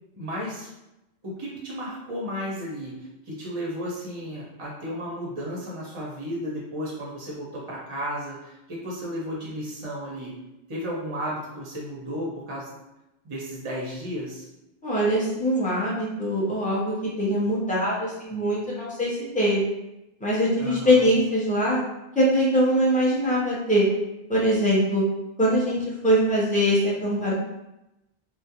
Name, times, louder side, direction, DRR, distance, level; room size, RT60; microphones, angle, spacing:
voice 1, 0.1-0.7 1.2-10.3 10.7-12.7 13.2-14.5 20.6-21.1, equal, 40° right, -5 dB, 0.5 m, -33 dB
voice 2, 14.8-19.6 20.2-21.8 22.2-23.9 24.3-25.0 25.4-27.3, equal, 10° left, -6 dB, 0.5 m, -22 dB
2.3 x 2.1 x 2.8 m, 0.92 s
omnidirectional pair, 1.1 m